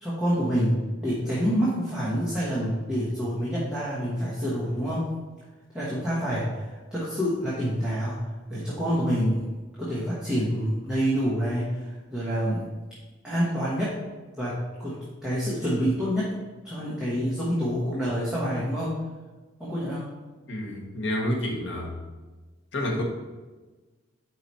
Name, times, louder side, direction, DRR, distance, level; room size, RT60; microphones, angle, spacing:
voice 1, 0.0-5.1 5.7-9.5 9.8-12.7 13.2-14.0 14.3-16.3 16.6-19.0 19.6-20.1, equal, 5° right, -10 dB, 1.1 m, -27 dB
voice 2, 20.5-21.9 22.7-23.0, left 1 dB, 65° left, -1 dB, 1.1 m, -29 dB
4.9 x 4.7 x 4.1 m, 1.3 s
head